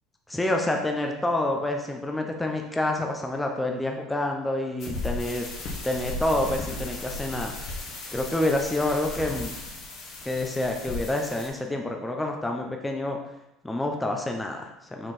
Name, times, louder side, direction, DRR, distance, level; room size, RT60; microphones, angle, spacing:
voice 1, 0.3-5.5 5.8-7.5 8.1-9.5 10.2-13.2 13.6-15.1, left 1 dB, 10° left, 2 dB, 0.8 m, -28 dB
sound 1, 4.8-11.5, left 2 dB, 55° left, 1.9 m, -36 dB
6.3 x 4.4 x 4.3 m, 0.88 s
supercardioid pair, 105°, 0 cm